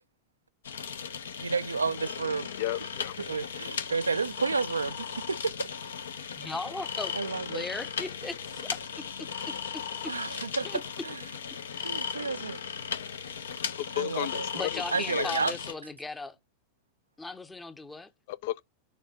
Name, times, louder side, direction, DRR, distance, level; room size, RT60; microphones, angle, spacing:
sound 1, 0.6-15.7, left 7 dB, 65° left, 0.8 m, -37 dB
voice 1, 1.4-2.5 3.2-5.7 7.1-7.6 10.1-10.7 11.0-11.2 11.8-12.6 13.9-14.5 14.9-15.5, right 4 dB, 75° right, 0.4 m, -31 dB
voice 2, 2.6-3.2 13.9-14.8 15.1-15.3 18.3-18.6, left 14 dB, 50° left, 0.4 m, -33 dB
voice 3, 6.4-7.1 7.5-10.8 11.7-12.1 14.5-16.4 17.2-18.1, left 3 dB, 10° left, 0.7 m, -38 dB
6.7 x 3.0 x 4.7 m
figure-of-eight pair, 90°, 0 cm